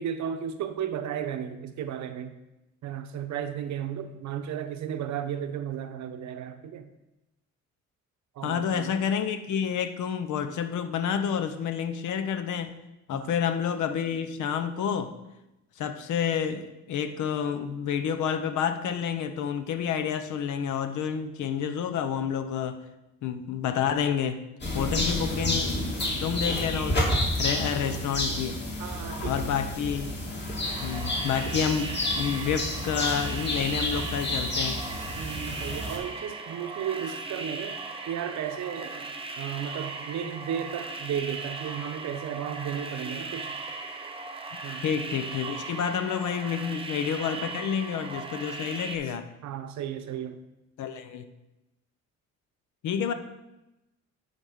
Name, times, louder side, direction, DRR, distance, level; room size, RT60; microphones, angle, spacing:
voice 1, 0.0-2.4 2.8-6.9 8.3-9.0 13.1-13.4 27.6-27.8 28.8-29.5 35.2-37.8 38.1-43.6 44.6-44.8 49.4-50.4, right 9 dB, 70° right, 9 dB, 0.8 m, -34 dB
voice 2, 8.4-12.7 13.1-15.1 15.8-22.8 23.2-24.4 24.7-28.6 29.2-30.2 30.8-34.8 44.8-49.3 50.8-51.2 52.8-53.1, left 7 dB, 75° left, 10 dB, 0.8 m, -29 dB
sound 1, 24.6-36.0, left 1 dB, 35° left, 2.5 m, -30 dB
sound 2, 30.6-49.0, right 3 dB, 20° right, 1.0 m, -38 dB
9.4 x 4.1 x 5.1 m, 0.95 s
cardioid pair, 90°, 30 cm